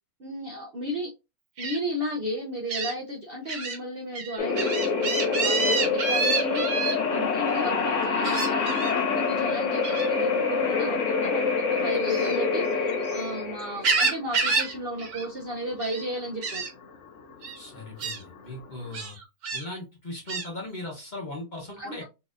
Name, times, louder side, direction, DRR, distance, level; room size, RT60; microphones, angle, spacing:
voice 1, 0.2-1.1 1.6-16.7 21.8-22.0, equal, 50° right, -1 dB, 0.7 m, -34 dB
Gull seagull, 1.6-1.8 2.7-2.9 3.5-3.8 4.1-6.9 8.2-8.9 9.8-10.1 12.0-13.2 13.6-14.7 15.0-15.3 15.6-16.0 16.4-16.7 17.4-17.6 18.0-18.2 18.9-19.6 20.3-20.5, right 4 dB, 65° right, 1.5 m, -28 dB
sound 1, 4.4-18.9, left 4 dB, 60° left, 1.0 m, -26 dB
voice 2, 17.5-19.2 19.5-22.0, left 1 dB, 35° left, -2 dB, 1.0 m, -38 dB
4.0 x 2.8 x 2.5 m, 0.27 s
omnidirectional pair, 1.7 m